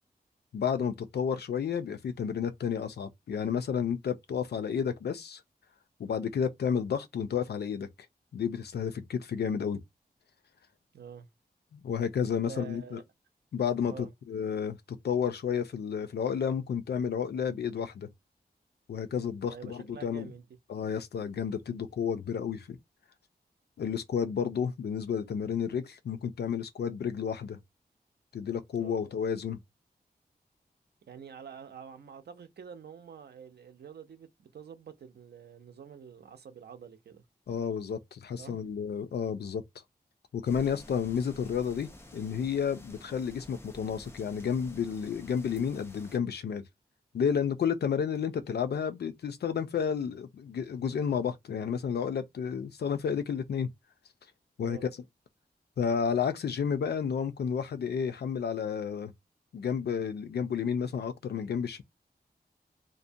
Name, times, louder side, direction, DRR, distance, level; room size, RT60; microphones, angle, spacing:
voice 1, 0.5-5.4 6.0-7.9 8.3-9.8 11.7-13.0 13.5-14.8 15.0-18.1 18.9-20.3 20.7-22.8 23.8-27.6 28.3-29.6 37.5-39.6 40.3-46.6 47.1-53.7 54.6-54.8 55.8-59.1 59.5-61.8, left 7 dB, 85° left, 0.5 m, -31 dB
voice 2, 10.9-11.3 12.3-13.0 13.9-14.1 19.5-20.5 28.7-29.0 31.0-37.2 38.4-38.7 54.6-54.9, right 7 dB, 90° right, 0.6 m, -47 dB
sound 1, 40.4-46.2, left 1 dB, 15° left, 0.5 m, -51 dB
2.6 x 2.1 x 2.6 m
wide cardioid pair, 130°, 16 cm